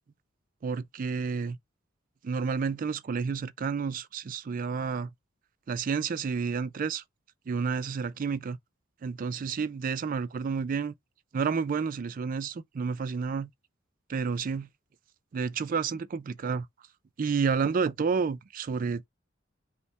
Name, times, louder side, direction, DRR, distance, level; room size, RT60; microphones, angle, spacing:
voice 1, 0.6-1.6 2.2-5.1 5.7-7.0 7.5-8.6 9.0-10.9 11.3-13.5 14.1-14.7 15.3-16.7 17.2-19.1, right 5 dB, 45° right, 0.4 m, -30 dB
5.4 x 2.2 x 3.2 m
head